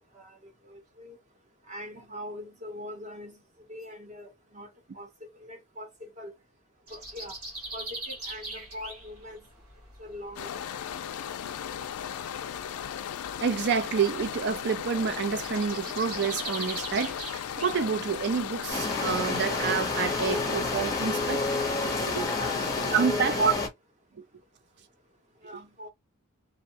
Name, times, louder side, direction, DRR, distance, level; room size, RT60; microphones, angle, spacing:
voice 1, 0.6-1.2 1.7-3.4 3.7-4.7 4.9-6.3 6.9-7.3 7.7-9.5 10.0-10.6 22.3-23.6 25.4-25.9, left 1 dB, 30° right, 0.8 m, -42 dB
sound 1, 6.9-22.2, right 2 dB, 85° right, 1.4 m, -43 dB
sound 2, 10.4-23.0, left 9 dB, 85° left, 0.4 m, -36 dB
voice 2, 13.4-17.3 17.6-21.4 22.0-22.2 22.9-23.5, right 6 dB, 50° right, 0.4 m, -28 dB
sound 3, 18.7-23.7, left 3 dB, 15° left, 0.6 m, -29 dB
2.6 x 2.1 x 2.8 m
head